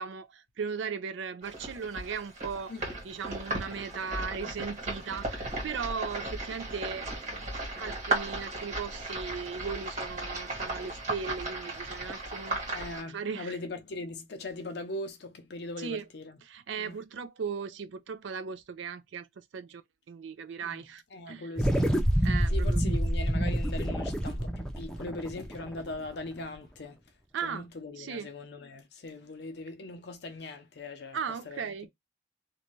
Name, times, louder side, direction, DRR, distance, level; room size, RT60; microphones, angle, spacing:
voice 1, 0.0-2.7 3.0-12.7 13.1-13.6 15.8-16.1 16.5-19.8 20.1-21.5 22.2-22.8 27.3-27.7 28.0-28.3 31.1-31.9, right 6 dB, 80° right, 0.4 m, -37 dB
sound 1, 1.4-13.0, right 2 dB, 40° right, 1.4 m, -36 dB
voice 2, 12.7-16.4 16.8-17.0 20.6-27.0 27.4-31.2 31.5-31.9, left 2 dB, 60° left, 0.5 m, -40 dB
sound 2, 21.6-26.2, equal, 5° left, 0.5 m, -27 dB
2.6 x 2.2 x 3.0 m
head